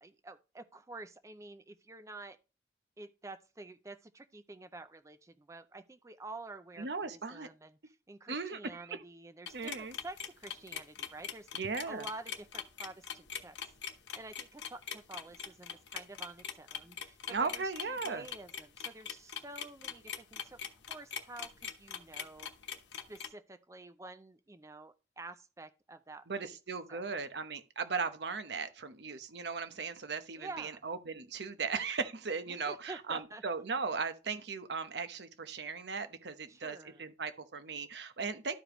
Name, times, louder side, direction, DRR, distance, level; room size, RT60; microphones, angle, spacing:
voice 1, 0.0-2.4 3.0-11.5 11.9-13.7 14.1-20.6 20.9-22.5 22.9-26.5 26.9-27.0 30.4-30.8 32.5-33.4 36.5-37.1, right 2 dB, 15° right, 0.4 m, -49 dB
voice 2, 6.8-7.5 8.3-9.0 9.5-10.0 11.5-12.1 17.3-18.3 26.3-38.5, right 4 dB, 75° right, 0.9 m, -37 dB
sound 1, 9.5-23.3, left 8 dB, 90° left, 1.0 m, -41 dB
12.5 x 5.0 x 3.0 m
head